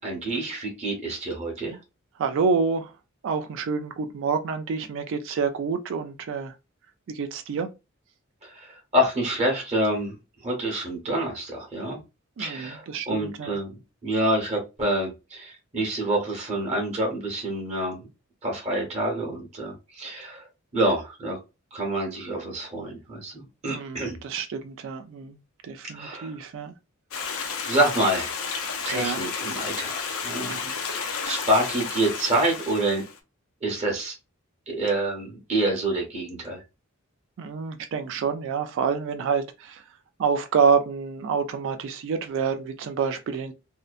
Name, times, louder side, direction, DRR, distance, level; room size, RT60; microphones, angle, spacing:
voice 1, 0.0-1.8 8.4-8.7 8.9-10.1 10.4-12.0 12.4-18.1 18.4-20.5 20.7-21.4 21.7-24.2 25.9-26.3 27.7-28.3 28.8-33.0 33.6-34.1 34.7-36.6, right 1 dB, 30° right, 1.0 m, -27 dB
voice 2, 2.2-2.9 3.2-6.5 7.1-7.7 12.4-13.5 23.7-25.4 25.6-26.7 28.9-29.2 30.4-30.7 37.4-39.8 40.2-43.5, right 5 dB, 65° right, 0.3 m, -27 dB
Stream, 27.1-33.2, left 5 dB, 80° left, 0.6 m, -32 dB
2.7 x 2.1 x 2.4 m
head